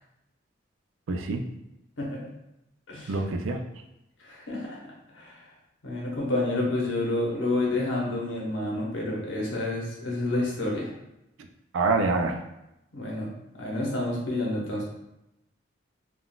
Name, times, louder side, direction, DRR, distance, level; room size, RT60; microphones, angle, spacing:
voice 1, 1.1-1.4 3.1-3.6 11.7-12.4, right 3 dB, 80° right, 6 dB, 0.4 m, -25 dB
voice 2, 4.2-4.8 5.1-5.3 5.8-10.9 12.9-13.3 13.6-14.8, left 2 dB, 75° left, -3 dB, 0.9 m, -29 dB
3.6 x 2.3 x 2.3 m, 0.89 s
head